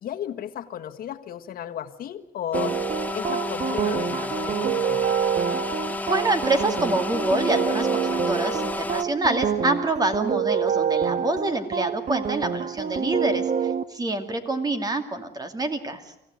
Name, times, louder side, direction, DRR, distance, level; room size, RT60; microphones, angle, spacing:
voice 1, 0.0-2.8 3.1-5.2, left 10 dB, 60° left, 7 dB, 1.7 m, -34 dB
sound 1, 2.5-9.0, left 2 dB, 10° left, 1.2 m, -31 dB
sound 2, 2.5-13.8, right 7 dB, 45° right, 1.4 m, -27 dB
voice 2, 6.1-16.0, right 2 dB, 25° right, 7 dB, 2.5 m, -26 dB
25.0 x 15.5 x 9.4 m, 0.88 s
cardioid pair, 110°, 17 cm